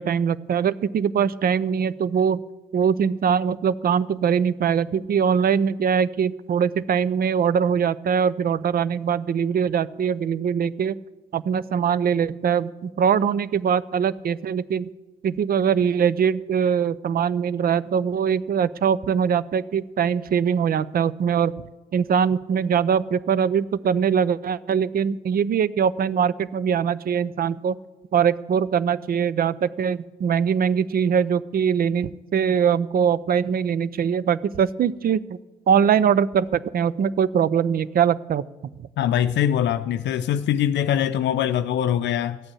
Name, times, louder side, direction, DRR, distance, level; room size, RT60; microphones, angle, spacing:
voice 1, 0.0-2.4 2.7-10.9 11.3-14.9 15.2-21.5 21.9-27.8 28.1-35.4 35.7-38.4 38.8-38.9, right 7 dB, 45° right, 0.6 m, -22 dB
voice 2, 39.0-42.4, left 10 dB, 60° left, 0.6 m, -22 dB
13.5 x 8.8 x 8.5 m
hypercardioid pair, 50°, 21 cm